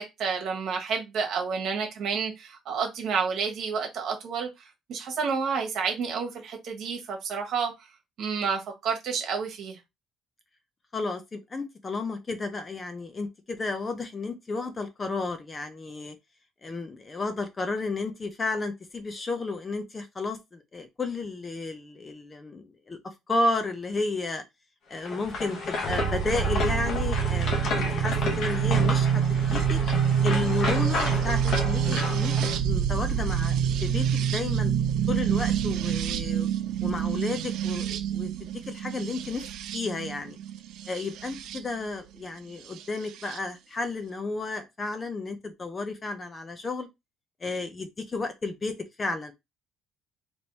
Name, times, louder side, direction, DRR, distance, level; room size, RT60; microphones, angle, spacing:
voice 1, 0.0-7.7 8.2-9.8, right 6 dB, 55° right, 1.4 m, -30 dB
voice 2, 10.9-16.2 16.6-24.4 24.9-29.8 30.2-34.7 35.1-36.5 36.8-38.3 38.7-39.5 39.7-40.4 40.9-46.9 47.4-49.3, left 3 dB, 20° left, 0.6 m, -32 dB
sound 1, 25.0-32.6, left 3 dB, 50° left, 0.9 m, -32 dB
sound 2, 25.9-41.6 42.8-43.4, right 8 dB, 70° right, 0.5 m, -27 dB
3.6 x 3.0 x 4.0 m
cardioid pair, 165°, 0 cm